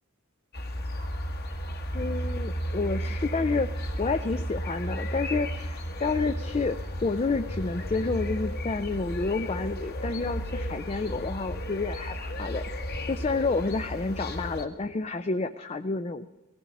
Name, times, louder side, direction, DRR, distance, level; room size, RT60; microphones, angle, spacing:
sound 1, 0.5-14.7, equal, 45° left, 1.5 m, -33 dB
voice 1, 1.9-12.6 13.1-16.3, left 3 dB, 30° left, 9 dB, 0.4 m, -29 dB
18.0 x 15.0 x 4.1 m, 1.1 s
head